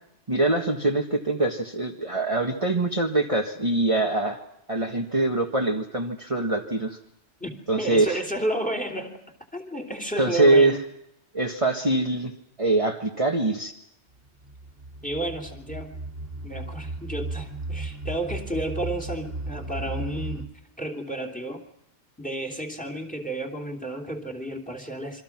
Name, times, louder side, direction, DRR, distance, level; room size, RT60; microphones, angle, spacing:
voice 1, 0.3-4.4 4.7-7.0 7.7-8.2 10.2-10.8 11.3-12.3 12.6-13.7, right 2 dB, 30° right, 1 dB, 1.7 m, -23 dB
voice 2, 7.4-9.2 9.5-10.8 15.0-15.9 16.4-20.4 20.8-21.6 22.2-25.2, right 1 dB, 5° left, 4 dB, 3.2 m, -32 dB
sound 1, 14.2-20.4, right 2 dB, 55° right, 2.4 m, -35 dB
27.5 x 24.5 x 6.0 m, 0.76 s
omnidirectional pair, 1.2 m